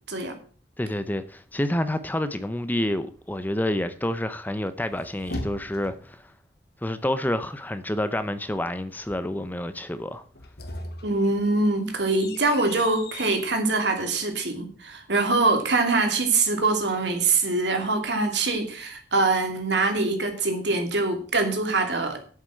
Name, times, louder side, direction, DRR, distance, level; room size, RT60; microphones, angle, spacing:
voice 1, 0.8-6.3 6.8-10.2, left 1 dB, 10° left, 0.7 m, -28 dB
sound 1, 4.7-6.2 10.2-13.5, left 1 dB, 60° left, 1.6 m, -39 dB
voice 2, 11.0-22.2, right 3 dB, 75° right, 2.8 m, -24 dB
8.3 x 8.0 x 7.7 m
head